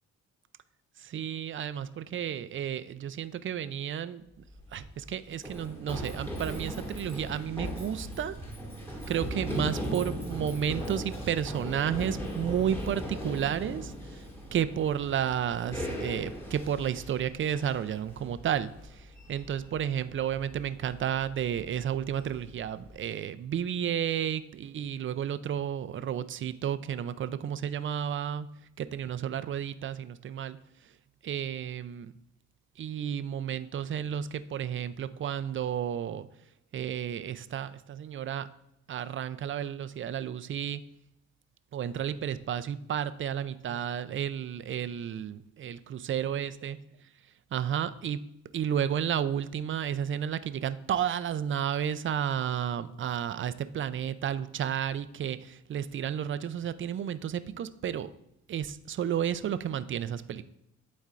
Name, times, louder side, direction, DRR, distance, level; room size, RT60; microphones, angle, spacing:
voice 1, 1.0-4.2 4.7-8.3 9.1-13.9 14.5-18.7 19.3-28.5 28.8-30.6 31.2-32.1 32.8-36.3 36.7-38.5 38.9-40.8 41.7-46.8 47.5-48.2 48.5-58.1 58.5-60.4, right 9 dB, 40° right, 13 dB, 0.4 m, -32 dB
Run, 4.4-23.0, equal, 10° left, 1.8 m, -39 dB
11.5 x 4.3 x 2.5 m, 0.84 s
cardioid pair, 90°, 30 cm